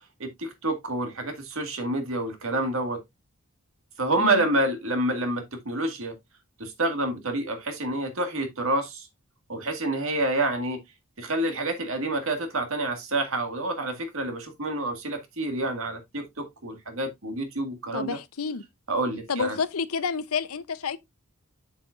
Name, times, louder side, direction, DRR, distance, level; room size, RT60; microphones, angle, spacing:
voice 1, 0.2-3.0 4.0-6.1 6.6-9.1 9.5-10.8 11.2-18.2 18.9-19.6, right 2 dB, 65° right, 1.9 m, -28 dB
voice 2, 17.9-18.6 19.3-21.0, left 5 dB, 85° left, 0.8 m, -29 dB
7.5 x 7.2 x 2.5 m
head